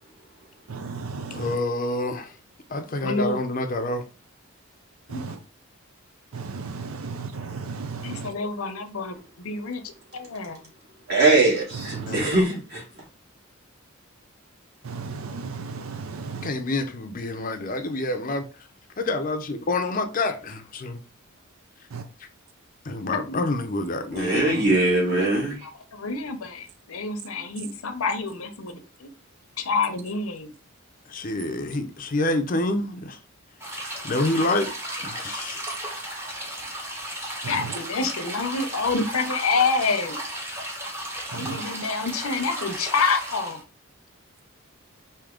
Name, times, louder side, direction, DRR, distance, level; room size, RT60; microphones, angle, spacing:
voice 1, 0.7-1.6 5.1-5.4 6.3-8.3 11.7-12.3 14.8-16.5 21.9-22.0 37.4-37.7 41.3-41.6, right 4 dB, 80° right, 0.5 m, -34 dB
voice 2, 1.3-2.3 2.7-4.0 12.0-12.6 16.4-18.4 19.0-21.0 22.8-24.7 31.1-33.2 34.0-34.7 35.0-35.7, left 2 dB, 40° left, 0.5 m, -27 dB
voice 3, 3.0-3.4 5.1-5.2 8.0-10.6 23.1-23.4 25.6-29.1 29.6-30.5 37.5-40.2 41.3-43.6, left 4 dB, 90° left, 0.8 m, -27 dB
voice 4, 11.1-12.8 24.1-25.6, right 2 dB, 50° right, 2.6 m, -21 dB
sound 1, 33.6-43.6, right 1 dB, 10° right, 1.0 m, -34 dB
4.9 x 2.8 x 3.7 m
head